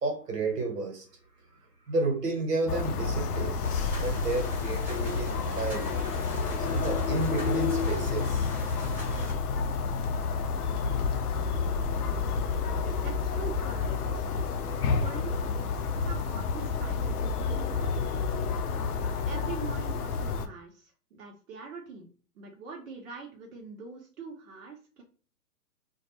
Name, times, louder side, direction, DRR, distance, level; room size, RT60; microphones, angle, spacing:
voice 1, 0.0-1.1 1.9-3.6 4.0-5.9 6.6-8.5, right 2 dB, 75° right, 3 dB, 1.1 m, -31 dB
sound 1, 2.7-20.5, left 4 dB, 70° left, 0.5 m, -29 dB
sound 2, 3.6-9.3, left 1 dB, 5° right, 0.7 m, -42 dB
voice 2, 12.8-14.5 15.0-18.1 19.2-22.1 22.3-25.0, right 4 dB, 60° right, 0 dB, 0.8 m, -44 dB
2.3 x 2.2 x 2.9 m, 0.39 s
figure-of-eight pair, 120°, 48 cm